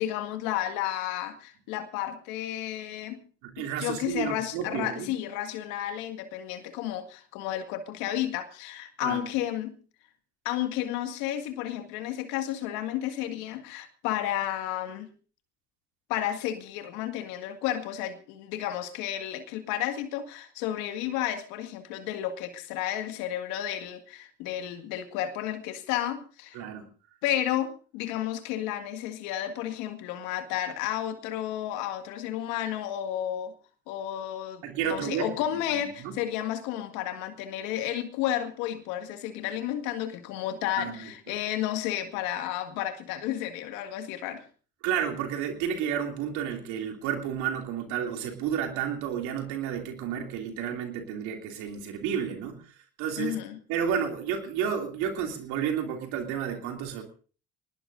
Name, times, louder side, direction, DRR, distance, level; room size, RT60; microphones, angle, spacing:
voice 1, 0.0-3.2 3.6-9.8 10.4-15.1 16.1-26.6 27.2-33.5 33.9-44.4 53.2-53.6, left 12 dB, 80° left, 7 dB, 2.1 m, -32 dB
voice 2, 3.4-5.1 9.0-9.2 26.5-26.9 34.6-35.3 36.0-36.1 40.8-41.1 44.8-52.7 53.0-53.4 53.7-57.0, right 8 dB, 75° right, 4 dB, 2.8 m, -31 dB
23.5 x 19.5 x 2.6 m, 0.39 s
hypercardioid pair, 55°, 30 cm